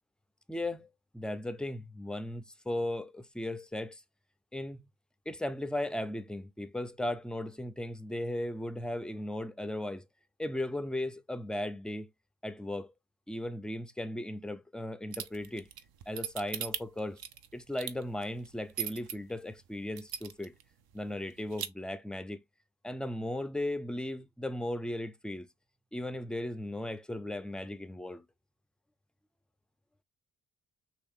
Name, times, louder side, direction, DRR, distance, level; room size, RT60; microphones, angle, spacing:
voice 1, 0.5-0.9 1.1-4.0 4.5-4.8 5.3-10.0 10.4-12.1 12.4-12.9 13.3-15.7 16.1-17.2 17.5-20.5 20.9-22.4 22.8-25.5 25.9-28.3, left 1 dB, ahead, 0.4 m, -36 dB
sound 1, 15.1-19.1 19.6-19.7 20.0-20.6 20.9-21.0 21.3-21.7, right 9 dB, 60° right, 0.7 m, -37 dB
3.1 x 2.7 x 3.6 m
supercardioid pair, 50°, 41 cm